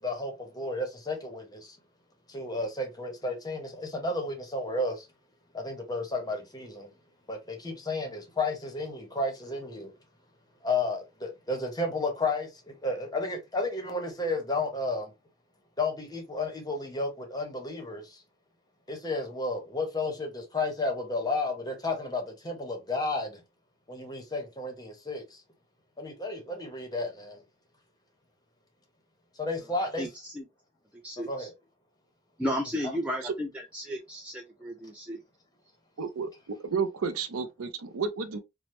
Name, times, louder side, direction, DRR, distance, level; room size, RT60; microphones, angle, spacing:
voice 1, 0.0-1.8 2.3-5.1 5.5-6.9 7.3-9.9 10.6-15.1 15.8-18.2 18.9-23.4 23.9-25.4 26.0-27.4 29.4-30.1 31.3-31.5, left 2 dB, 20° left, 0.8 m, -32 dB
voice 2, 30.0-30.4 31.0-31.5 32.4-35.2, equal, 5° right, 0.3 m, -34 dB
voice 3, 36.0-36.3 36.6-38.4, right 5 dB, 70° right, 0.5 m, -31 dB
3.1 x 2.0 x 3.0 m
head